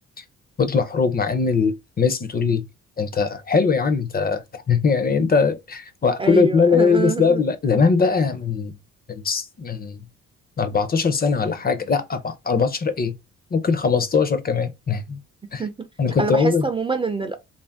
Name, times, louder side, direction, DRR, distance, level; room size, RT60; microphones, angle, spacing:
voice 1, 0.6-2.6 3.0-8.7 9.1-10.0 10.6-13.1 13.5-15.2 15.5-15.6 16.0-16.7, left 5 dB, 30° left, 0.6 m, -21 dB
voice 2, 6.2-7.4 15.6-15.9 16.2-17.3, right 4 dB, 20° right, 0.5 m, -25 dB
2.6 x 2.1 x 3.4 m
cardioid pair, 90°, 30 cm